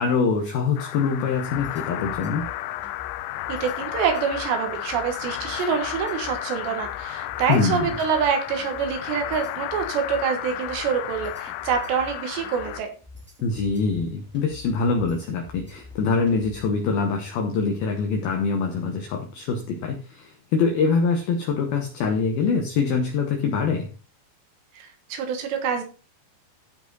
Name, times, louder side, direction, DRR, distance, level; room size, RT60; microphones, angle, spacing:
voice 1, 0.0-2.5 7.5-7.9 13.4-23.9, left 5 dB, 70° left, 3 dB, 2.5 m, -24 dB
sound 1, 0.8-12.8, left 15 dB, 90° left, 3.0 m, -33 dB
sound 2, 1.5-16.8, left 3 dB, 5° right, 1.1 m, -46 dB
voice 2, 3.5-12.9 24.8-25.8, right 7 dB, 75° right, 5 dB, 3.5 m, -26 dB
15.0 x 5.6 x 3.9 m, 0.35 s
omnidirectional pair, 5.2 m